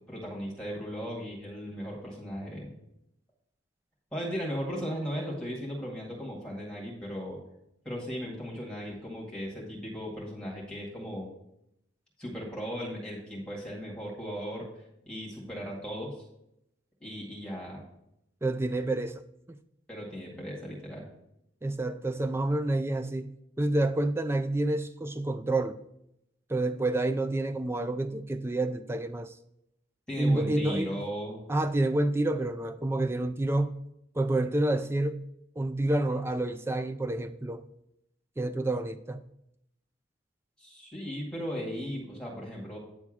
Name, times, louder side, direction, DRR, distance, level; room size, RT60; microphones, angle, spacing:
voice 1, 0.1-2.7 4.1-7.4 7.8-11.3 12.2-16.2 17.0-17.8 19.9-21.1 30.1-31.4 40.6-42.8, equal, 5° left, 2.0 m, -37 dB
voice 2, 18.4-19.2 19.5-19.6 21.6-25.8 26.5-29.4 30.2-30.9 31.5-33.8 34.2-35.3 35.6-37.6 38.4-39.2, right 2 dB, 10° right, 0.3 m, -28 dB
9.4 x 3.6 x 6.2 m
head